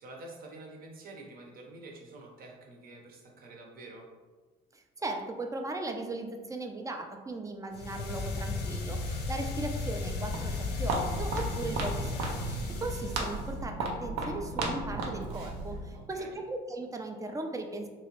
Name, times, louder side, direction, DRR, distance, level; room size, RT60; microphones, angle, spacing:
voice 1, 0.0-4.1 15.9-16.4, right 2 dB, 50° right, 0 dB, 0.8 m, -48 dB
voice 2, 4.7-17.9, right 2 dB, 15° right, 4 dB, 0.4 m, -38 dB
sound 1, 7.7-13.6, left 3 dB, 60° left, 0.6 m, -35 dB
Walk footsteps, 9.9-16.0, right 2 dB, 85° right, 0.6 m, -35 dB
3.0 x 2.9 x 2.9 m, 1.4 s
supercardioid pair, 80°, 19 cm